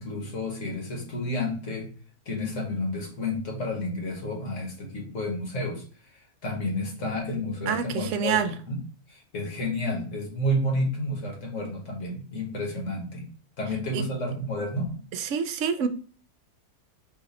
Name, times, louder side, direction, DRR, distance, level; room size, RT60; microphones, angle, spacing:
voice 1, 0.0-1.9 2.2-5.8 6.1-8.8 9.1-13.3 13.6-14.9, left 1 dB, 55° left, 1.7 m, -30 dB
voice 2, 7.7-8.5 13.9-14.0 15.1-15.9, right 7 dB, 65° right, 0.8 m, -27 dB
4.9 x 2.6 x 4.0 m
omnidirectional pair, 1.6 m